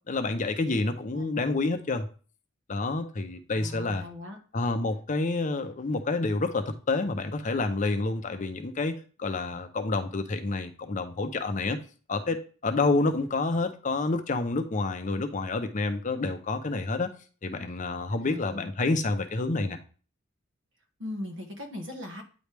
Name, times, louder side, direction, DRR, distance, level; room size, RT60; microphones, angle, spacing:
voice 1, 0.1-2.1 2.7-4.0 4.5-11.8 12.1-17.1 17.4-19.8, left 3 dB, 40° left, 7 dB, 0.6 m, -28 dB
voice 2, 1.1-1.5 3.5-4.4 18.2-18.7 21.0-22.2, left 1 dB, 65° right, 4 dB, 1.2 m, -39 dB
9.1 x 3.1 x 3.3 m, 0.38 s
head